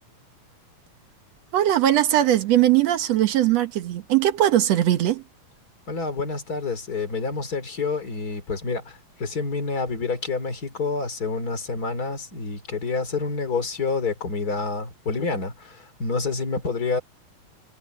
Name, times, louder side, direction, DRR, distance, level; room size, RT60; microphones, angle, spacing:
voice 1, 1.5-5.2, right 12 dB, 65° right, 2.2 m, -20 dB
voice 2, 5.9-17.0, left 4 dB, 30° left, 3.2 m, -28 dB
omnidirectional pair, 3.4 m